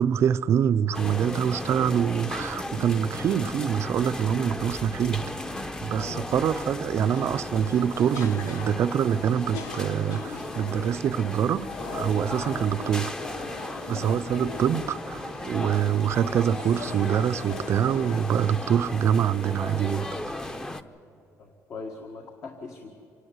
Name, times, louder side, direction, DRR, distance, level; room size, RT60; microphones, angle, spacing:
voice 1, 0.0-5.4 5.8-13.1 13.9-20.1, right 8 dB, 50° right, 0.4 m, -25 dB
sound 1, 0.9-20.8, left 1 dB, 10° left, 0.8 m, -35 dB
voice 2, 6.0-6.3 21.4-22.9, left 4 dB, 55° left, 1.8 m, -40 dB
sound 2, 7.0-18.2, left 5 dB, 90° left, 1.4 m, -41 dB
25.5 x 11.5 x 9.5 m
cardioid pair, 120°, 6 cm